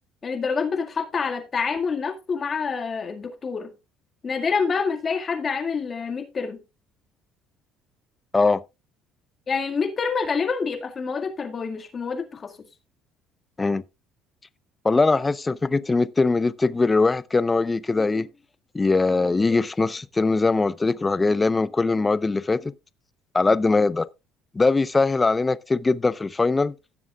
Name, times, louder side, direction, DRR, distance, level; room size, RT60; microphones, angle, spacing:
voice 1, 0.2-3.7 4.2-6.6 9.5-12.5, left 5 dB, 40° left, 1.9 m, -27 dB
voice 2, 14.8-18.3 18.7-22.7 23.3-24.1 24.5-26.7, left 3 dB, 20° left, 0.6 m, -21 dB
17.0 x 7.2 x 2.3 m
supercardioid pair, 80°, 0 cm